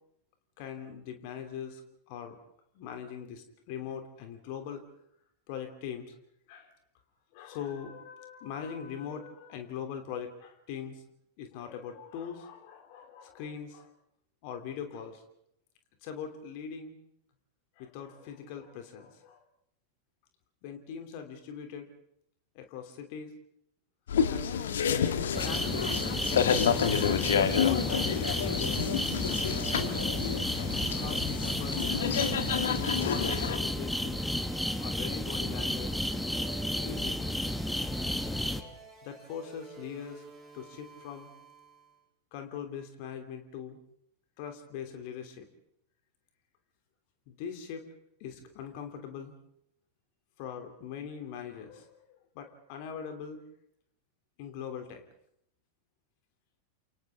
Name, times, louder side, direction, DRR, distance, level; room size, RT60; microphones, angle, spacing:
voice 1, 0.6-1.8 2.1-2.4 2.7-4.8 5.5-6.1 6.5-6.7 7.3-11.0 11.4-13.9 14.4-15.2 16.0-17.0 17.8-19.4 20.6-21.9 22.5-23.3 24.3-24.8 25.2-26.4 27.0-29.6 30.8-31.8 32.9-34.2 34.8-36.0 36.8-37.3 37.6-38.7 39.0-40.2 40.5-41.3 42.3-43.8 44.4-45.5 47.3-47.9 48.2-49.3 50.4-53.4 54.4-55.0, left 8 dB, 45° left, 5 dB, 3.1 m, -41 dB
sound 1, 24.1-33.6, left 8 dB, 65° left, 1.6 m, -29 dB
sound 2, 25.3-38.6, left 1 dB, 5° left, 1.3 m, -32 dB
sound 3, 25.6-42.0, right 4 dB, 20° right, 7.2 m, -51 dB
30.0 x 27.5 x 3.7 m, 0.73 s
figure-of-eight pair, 90°, 0 cm